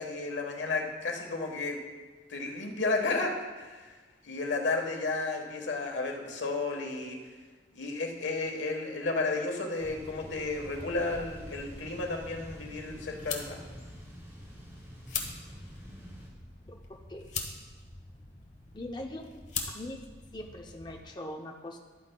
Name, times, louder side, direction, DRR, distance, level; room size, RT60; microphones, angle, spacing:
voice 1, 0.0-1.8 2.3-4.0 4.2-7.2 7.7-13.6, left 3 dB, 80° left, 2 dB, 1.3 m, -32 dB
Thunder / Bicycle, 9.8-16.3, equal, 15° right, 2.1 m, -47 dB
sound 1, 10.6-21.0, left 5 dB, 40° left, 1.0 m, -43 dB
voice 2, 16.7-17.3 18.7-19.3 19.7-20.0 20.3-21.8, left 1 dB, 25° left, 2 dB, 0.5 m, -41 dB
12.5 x 8.9 x 2.2 m, 1.3 s
head